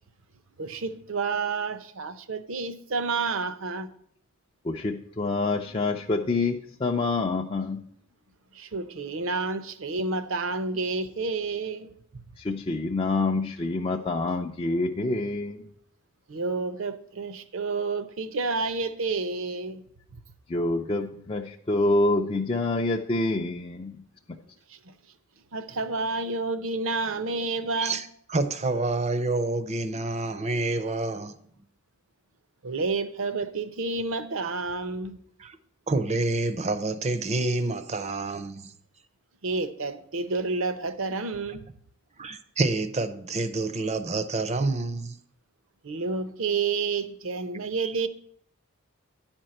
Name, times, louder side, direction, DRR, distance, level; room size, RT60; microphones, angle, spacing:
voice 1, 0.6-3.9 8.5-11.9 16.3-19.8 24.9-25.0 25.5-28.0 32.6-35.2 39.4-41.7 45.8-48.1, right 4 dB, 65° right, 0.7 m, -30 dB
voice 2, 4.6-7.8 12.4-15.6 20.5-24.0, left 2 dB, 25° left, 0.4 m, -27 dB
voice 3, 27.8-31.4 35.4-35.6 35.9-38.7 42.2-45.2 47.8-47.9, right 2 dB, 30° right, 0.6 m, -28 dB
10.0 x 4.4 x 7.7 m
head